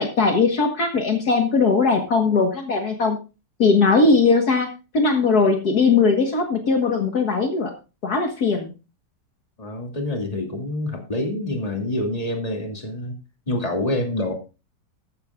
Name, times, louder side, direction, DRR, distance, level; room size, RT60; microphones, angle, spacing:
voice 1, 0.0-3.2 3.6-4.7 4.9-7.7 8.0-8.7, left 4 dB, 60° left, 4 dB, 2.0 m, -19 dB
voice 2, 9.6-13.2 13.5-14.3, left 1 dB, 20° left, 2 dB, 2.7 m, -26 dB
14.5 x 11.5 x 2.5 m, 0.30 s
omnidirectional pair, 1.9 m